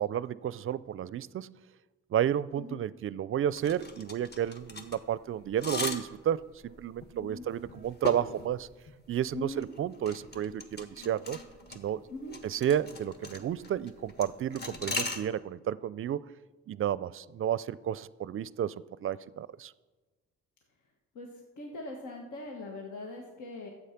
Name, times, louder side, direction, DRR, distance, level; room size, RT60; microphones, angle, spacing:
voice 1, 0.0-1.5 2.1-8.7 9.1-11.4 11.7-12.0 12.4-16.2 16.7-18.7 19.0-19.7, right 10 dB, 45° right, 19 dB, 0.4 m, -31 dB
sound 1, 3.5-15.2, left 3 dB, 35° left, 1.6 m, -40 dB
voice 2, 9.3-9.6 12.1-12.3 21.1-23.7, left 2 dB, 75° left, 1 dB, 1.5 m, -41 dB
11.5 x 8.2 x 5.9 m, 1.3 s
cardioid pair, 90°, 30 cm